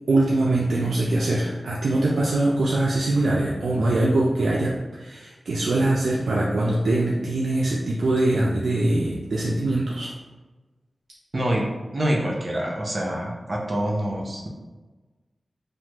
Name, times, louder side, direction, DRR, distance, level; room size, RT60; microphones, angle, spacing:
voice 1, 0.1-10.1, right 2 dB, 90° right, -4 dB, 0.3 m, -22 dB
voice 2, 11.3-14.5, right 1 dB, 45° right, -2 dB, 0.6 m, -26 dB
3.2 x 2.1 x 2.9 m, 1.2 s
wide cardioid pair, 65°, 0 cm